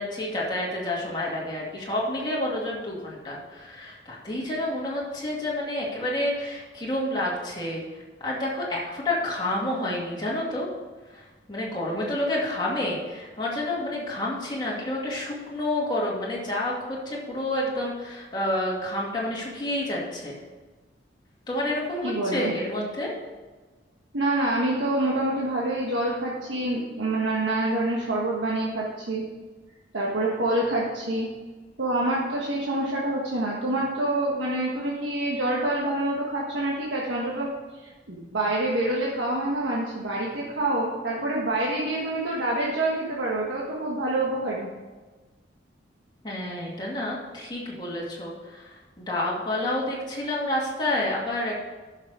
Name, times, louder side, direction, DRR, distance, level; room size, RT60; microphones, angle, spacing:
voice 1, 0.0-10.7 11.1-20.4 21.5-23.2 46.2-51.6, left 1 dB, 25° left, -5 dB, 2.4 m, -29 dB
voice 2, 22.0-22.5 24.1-29.2 29.9-31.3 31.8-37.5 38.1-44.7, right 1 dB, 85° right, -4 dB, 1.5 m, -26 dB
10.5 x 6.6 x 4.9 m, 1.3 s
head